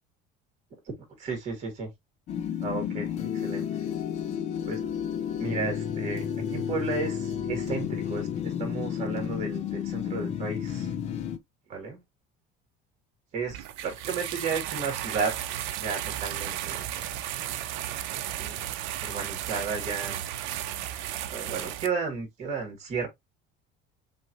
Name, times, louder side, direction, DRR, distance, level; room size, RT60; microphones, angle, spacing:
voice 1, 1.2-1.9 2.6-3.7 4.7-4.8 5.4-6.2 6.5-10.9 11.7-12.0 13.3-17.0 18.1-18.7 19.0-20.3 20.8-23.1, right 4 dB, 35° right, 2.4 m, -33 dB
sound 1, 2.3-11.4, left 8 dB, 35° left, 0.6 m, -31 dB
sound 2, 13.5-21.9, right 12 dB, 75° right, 0.7 m, -34 dB
6.0 x 2.8 x 2.9 m
cardioid pair, 180°, 20 cm